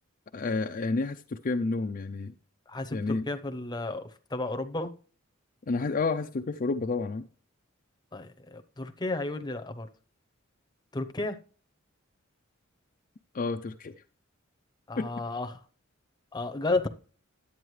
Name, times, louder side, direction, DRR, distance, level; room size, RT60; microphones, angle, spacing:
voice 1, 0.3-2.3 2.9-3.3 5.7-7.3 13.3-13.9 15.0-15.1, left 3 dB, 40° left, 0.5 m, -30 dB
voice 2, 2.7-5.0 8.1-9.9 10.9-11.4 14.9-15.6 16.3-16.9, left 2 dB, 20° left, 0.8 m, -32 dB
11.0 x 8.7 x 3.2 m
head